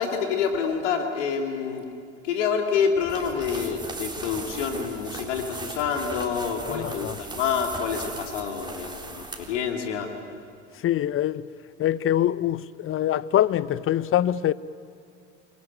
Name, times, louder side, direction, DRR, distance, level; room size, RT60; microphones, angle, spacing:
voice 1, 0.0-1.8 2.2-10.1, left 6 dB, 75° left, 3.1 m, -27 dB
sound 1, 3.0-9.6, right 2 dB, 10° right, 4.1 m, -38 dB
voice 2, 6.7-7.2 10.7-11.5 11.8-14.5, left 12 dB, 35° left, 0.8 m, -24 dB
28.0 x 22.0 x 9.1 m
hypercardioid pair, 75°, 36 cm